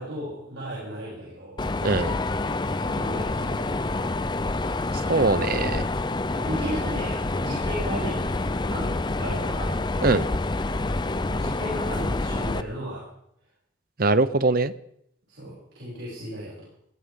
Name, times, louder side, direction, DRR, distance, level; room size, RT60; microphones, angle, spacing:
voice 1, 0.0-1.6 2.8-4.4 6.0-8.3 8.6-9.8 11.3-13.0 15.3-16.5, equal, 65° right, -6 dB, 7.4 m, -35 dB
Mechanisms, 1.6-12.6, left 2 dB, 20° left, 0.5 m, -27 dB
voice 2, 1.8-2.2 4.9-5.9 10.0-10.2 14.0-14.7, right 3 dB, 45° right, 14 dB, 0.7 m, -22 dB
21.0 x 16.5 x 3.8 m, 0.74 s
head